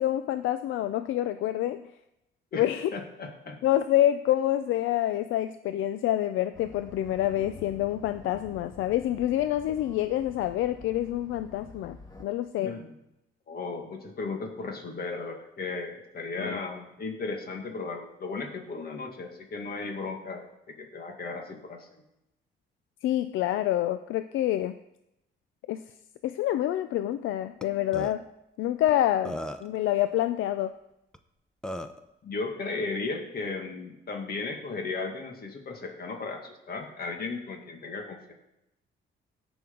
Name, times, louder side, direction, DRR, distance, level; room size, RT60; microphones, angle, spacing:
voice 1, 0.0-1.9 2.5-2.9 3.6-12.7 16.4-16.6 23.0-24.7 25.7-25.8 26.2-28.2 28.6-30.7, left 13 dB, 80° left, 11 dB, 0.5 m, -27 dB
voice 2, 2.5-3.6 12.6-12.9 13.5-20.5 20.8-21.9 32.2-38.3, left 3 dB, 50° left, 2 dB, 2.0 m, -35 dB
sound 1, 6.5-12.2, left 3 dB, 20° left, 1.7 m, -48 dB
Burping eructation, 27.6-27.7 27.9-28.1 28.9-29.0 29.3-29.8 31.1-31.2 31.6-32.0, equal, 5° left, 0.8 m, -35 dB
17.5 x 6.2 x 3.9 m, 0.86 s
cardioid pair, 90°, 20 cm